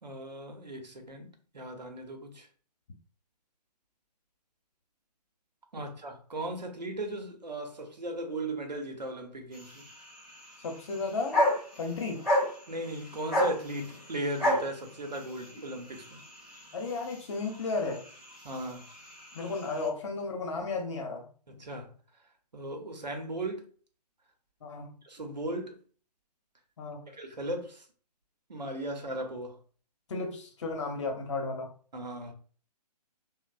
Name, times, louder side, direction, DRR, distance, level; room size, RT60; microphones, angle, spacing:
voice 1, 0.0-2.5 5.7-9.9 12.7-16.2 18.4-18.9 21.5-21.9 22.5-23.7 25.0-25.8 27.1-27.9 28.5-29.6 31.9-32.3, right 1 dB, 85° right, 0.8 m, -37 dB
sound 1, 9.5-19.9, left 1 dB, ahead, 0.7 m, -33 dB
voice 2, 10.6-11.4 11.8-12.3 16.7-18.1 19.3-21.3 24.6-24.9 26.8-27.0 30.1-31.7, left 3 dB, 45° left, 0.8 m, -34 dB
3.0 x 2.1 x 2.5 m
figure-of-eight pair, 135°, 21 cm